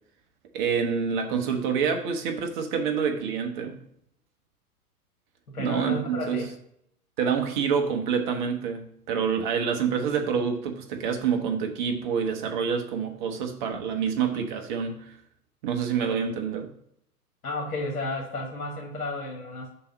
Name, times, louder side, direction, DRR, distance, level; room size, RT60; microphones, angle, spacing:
voice 1, 0.5-3.8 5.6-6.5 7.2-15.2 15.6-16.7, right 6 dB, 30° right, 0.8 m, -27 dB
voice 2, 5.5-6.5 17.4-19.7, left 2 dB, 70° left, 1.5 m, -32 dB
5.6 x 3.9 x 5.2 m
figure-of-eight pair, 115°, 45 cm